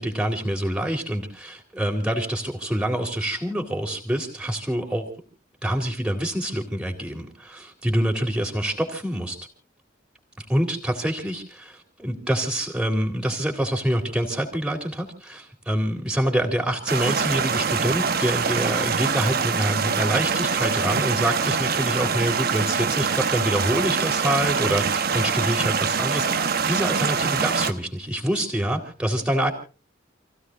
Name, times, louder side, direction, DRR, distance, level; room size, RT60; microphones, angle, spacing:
voice 1, 0.0-5.1 5.6-9.4 10.5-29.5, right 1 dB, 5° right, 1 dB, 3.4 m, -26 dB
sound 1, 16.9-27.7, right 5 dB, 50° right, 1.1 m, -24 dB
29.5 x 16.0 x 2.6 m, 0.35 s
head